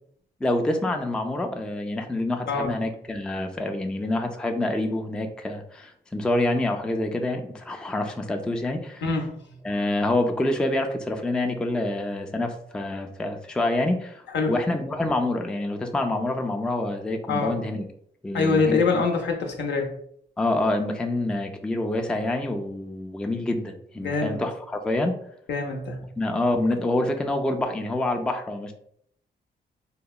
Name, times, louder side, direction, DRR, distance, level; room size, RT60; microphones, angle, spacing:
voice 1, 0.4-9.0 9.6-17.8 18.2-19.0 20.4-25.2 26.2-28.7, left 2 dB, 5° left, 4 dB, 0.3 m, -27 dB
voice 2, 9.0-9.4 14.3-14.5 17.3-17.6 18.3-19.9 24.0-24.4 25.5-26.0, left 4 dB, 75° left, 2 dB, 0.6 m, -24 dB
2.8 x 2.0 x 2.2 m, 0.67 s
cardioid pair, 60°, 19 cm